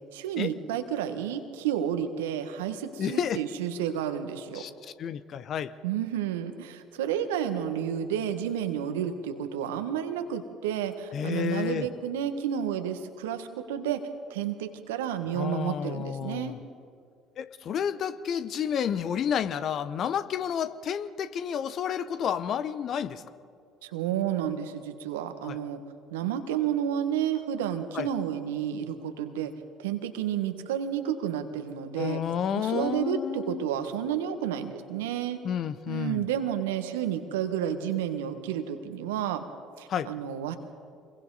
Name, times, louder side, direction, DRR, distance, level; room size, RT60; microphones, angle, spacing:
voice 1, 0.1-4.6 5.8-14.0 14.3-16.5 23.8-25.8 26.1-29.5 29.8-32.2 32.5-35.4 35.9-39.4 39.8-40.6, right 9 dB, 75° right, 8 dB, 1.4 m, -31 dB
voice 2, 3.0-3.4 4.5-4.7 5.0-5.7 11.1-11.9 15.3-16.6 17.4-23.2 25.4-25.6 27.9-28.1 32.0-33.6 35.4-36.3 39.9-40.1, left 8 dB, 50° left, 13 dB, 0.9 m, -30 dB
28.0 x 22.0 x 4.1 m, 2.3 s
hypercardioid pair, 55°, 0 cm